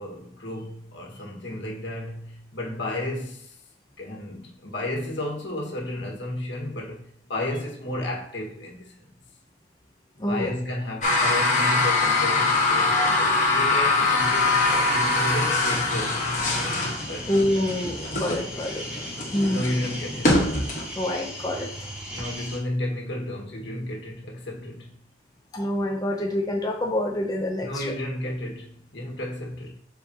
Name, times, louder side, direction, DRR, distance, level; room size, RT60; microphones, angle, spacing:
voice 1, 0.0-3.6 4.0-9.0 10.3-14.6 14.9-16.2 17.0-17.4 19.5-20.5 22.1-25.0 27.6-29.8, left 1 dB, 85° left, 1.6 m, -32 dB
voice 2, 10.2-10.5 17.3-18.8 19.3-19.7 20.9-21.7 25.5-27.8, left 1 dB, 20° left, 0.6 m, -26 dB
sound 1, 11.0-20.9, left 3 dB, 45° left, 1.2 m, -23 dB
sound 2, 14.2-22.6, equal, 10° right, 2.2 m, -37 dB
7.5 x 4.5 x 2.8 m
head